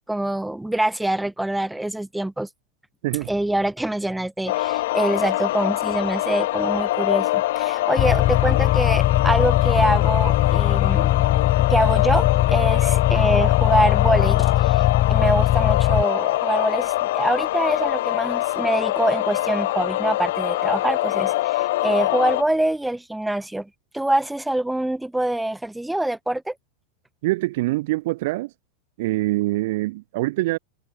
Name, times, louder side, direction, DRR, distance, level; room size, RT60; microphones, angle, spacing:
voice 1, 0.0-2.5 3.3-11.1 11.7-26.5, right 1 dB, 5° right, 1.5 m, -25 dB
sound 1, 4.5-22.4, left 17 dB, 55° left, 1.0 m, -24 dB
sound 2, 8.0-16.0, left 14 dB, 35° left, 1.4 m, -20 dB
voice 2, 27.2-28.5 29.0-30.6, right 20 dB, 50° right, 1.0 m, -24 dB
figure-of-eight pair, 90°, 0 cm